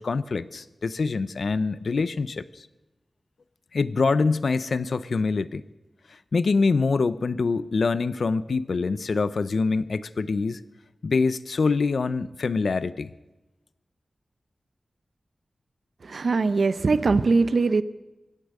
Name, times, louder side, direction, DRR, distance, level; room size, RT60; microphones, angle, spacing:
voice 1, 0.0-2.7 3.7-5.6 6.3-10.6 11.0-13.1, left 4 dB, 70° left, 16 dB, 0.6 m, -25 dB
voice 2, 16.0-17.8, right 4 dB, 70° right, 14 dB, 0.6 m, -21 dB
24.5 x 8.5 x 6.5 m, 1.1 s
wide cardioid pair, 90°, 0 cm